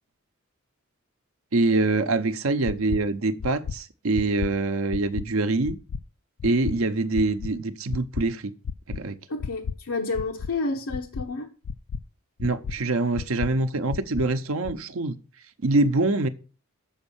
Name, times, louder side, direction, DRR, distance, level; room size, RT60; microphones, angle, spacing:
voice 1, 1.5-5.8 6.4-8.5 8.9-9.2 12.4-15.2 15.6-16.3, right 2 dB, 70° right, 0.8 m, -24 dB
sound 1, 2.6-3.0 3.4-3.7 4.1-4.5 4.9-5.2 5.6-6.0 6.4-6.7 7.1-7.5 7.9-8.2 8.6-9.0 9.4-9.7 10.1-10.5 10.9-11.2 11.6-12.0 12.4-12.7 13.1-13.5 13.9-14.2 14.6-14.7, left 6 dB, 60° left, 0.3 m, -31 dB
voice 2, 9.3-11.5, left 3 dB, 90° left, 0.9 m, -30 dB
7.3 x 5.3 x 7.1 m
head